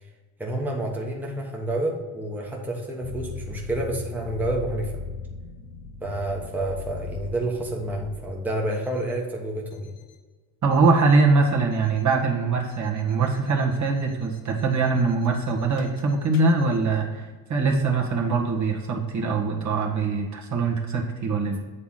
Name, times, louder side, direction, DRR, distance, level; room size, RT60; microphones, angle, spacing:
voice 1, 0.4-5.0 6.0-9.9, right 1 dB, 5° right, -2 dB, 1.3 m, -29 dB
sound 1, 3.0-8.4 8.7-9.2 9.7-10.2 10.7-11.2 11.7-12.2 12.7-16.8, left 5 dB, 65° left, 1.1 m, -40 dB
voice 2, 10.6-21.6, right 4 dB, 40° right, 0 dB, 1.5 m, -22 dB
8.3 x 3.5 x 5.7 m, 1.4 s
supercardioid pair, 85°, 45 cm